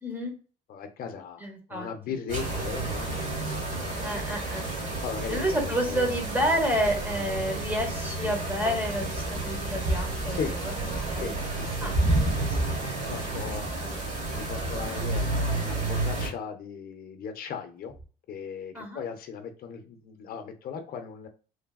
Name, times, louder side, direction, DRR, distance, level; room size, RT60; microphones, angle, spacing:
voice 1, 0.0-0.3 1.4-1.9 4.0-4.6 5.3-11.3 11.8-12.9 13.8-14.0 18.7-19.0, equal, 10° right, 2 dB, 1.1 m, -30 dB
voice 2, 0.7-3.9 5.0-5.6 5.9-6.1 10.4-10.6 11.2-12.0 12.4-12.7 13.0-13.7 14.3-18.0 18.3-21.3, left 7 dB, 60° left, 7 dB, 0.6 m, -37 dB
sound 1, 2.3-16.3, right 2 dB, 45° right, 1.3 m, -30 dB
3.2 x 2.2 x 2.3 m, 0.37 s
cardioid pair, 110°, 17 cm